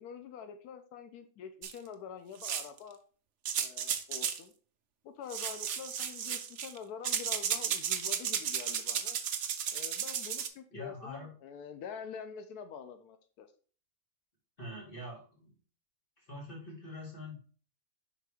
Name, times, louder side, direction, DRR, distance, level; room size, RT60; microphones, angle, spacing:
voice 1, 0.0-3.0 3.6-4.5 5.0-9.2 9.7-13.5, left 7 dB, 90° left, 8 dB, 1.2 m, -46 dB
sound 1, 1.6-1.7 2.4-2.8 3.5-4.4 5.3-6.8 7.0-10.5, right 8 dB, 60° right, 0.9 m, -34 dB
voice 2, 10.7-11.3 14.6-15.6 16.2-17.4, left 1 dB, 35° left, -2 dB, 2.3 m, -44 dB
5.3 x 3.8 x 4.8 m, 0.40 s
omnidirectional pair, 1.6 m